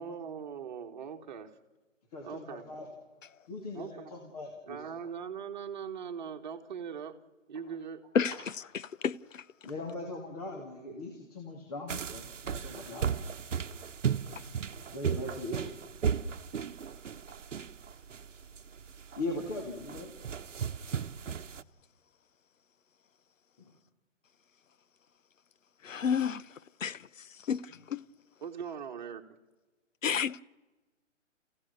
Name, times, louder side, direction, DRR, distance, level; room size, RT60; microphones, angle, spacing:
voice 1, 0.0-1.5 2.2-2.7 3.7-4.1 4.7-7.2 7.5-8.0 28.4-29.3, right 7 dB, 35° right, 1.7 m, -40 dB
voice 2, 2.1-2.9 3.5-4.9 7.7-7.8 8.3-8.4 9.6-13.2 14.9-15.8 19.2-20.1 23.6-23.7 27.7-27.8, left 2 dB, 30° left, 2.6 m, -40 dB
sound 1, 11.9-21.6, right 7 dB, 75° right, 1.0 m, -35 dB
voice 3, 25.8-26.4 26.8-27.0 27.5-27.6 27.9-28.0 30.0-30.4, left 7 dB, 85° left, 0.9 m, -28 dB
30.0 x 16.0 x 6.9 m
hypercardioid pair, 165°, 38 cm